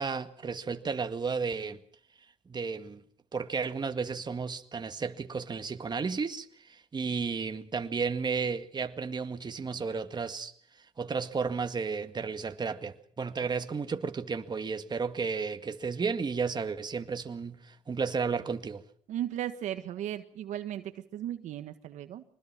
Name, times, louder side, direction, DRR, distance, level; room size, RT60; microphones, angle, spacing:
voice 1, 0.0-1.8 2.5-3.0 3.3-10.5 11.0-18.8, right 5 dB, 35° right, 1.9 m, -33 dB
voice 2, 19.1-22.2, right 11 dB, 80° right, 1.6 m, -36 dB
25.0 x 20.5 x 6.0 m
supercardioid pair, 70°, 12 cm